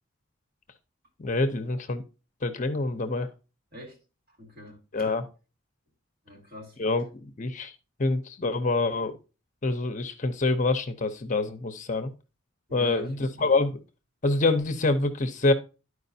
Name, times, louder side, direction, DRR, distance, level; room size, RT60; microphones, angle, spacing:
voice 1, 1.2-2.0 2.4-3.3 4.9-5.2 6.8-7.7 8.0-9.2 9.6-12.1 12.7-13.8 14.2-15.5, left 2 dB, 35° left, 0.6 m, -26 dB
voice 2, 4.3-5.1 6.2-6.8 12.7-13.5, left 1 dB, 50° right, 2.5 m, -45 dB
12.0 x 4.8 x 2.6 m
head